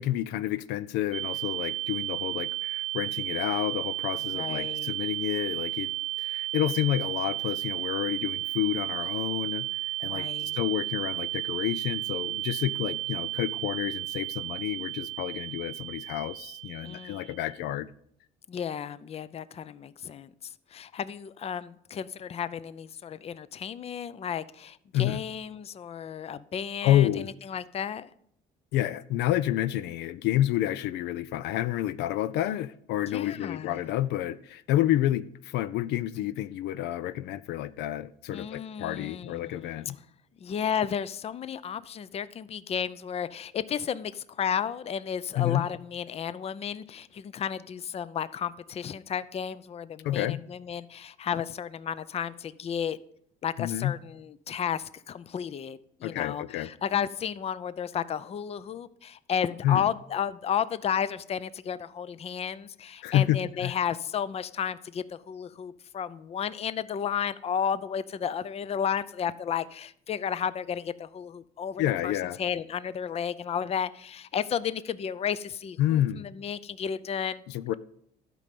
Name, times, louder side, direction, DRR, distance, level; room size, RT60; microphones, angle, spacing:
voice 1, 0.0-5.9 6.2-9.7 10.0-10.3 10.5-17.9 24.9-25.2 26.8-27.3 28.7-40.0 45.4-45.7 50.0-50.4 53.6-53.9 56.0-56.7 59.6-59.8 63.0-63.7 71.8-72.4 75.8-76.3 77.5-77.7, left 13 dB, 85° left, 0.5 m, -29 dB
sound 1, 1.1-17.5, right 17 dB, 40° right, 0.5 m, -33 dB
voice 2, 4.3-5.0 10.0-10.6 16.8-17.3 18.5-20.3 20.7-28.1 33.1-33.9 38.3-40.0 40.4-53.0 53.4-72.1 72.4-77.4, left 8 dB, 35° left, 0.5 m, -33 dB
12.0 x 5.3 x 7.7 m
cardioid pair, 110°, 17 cm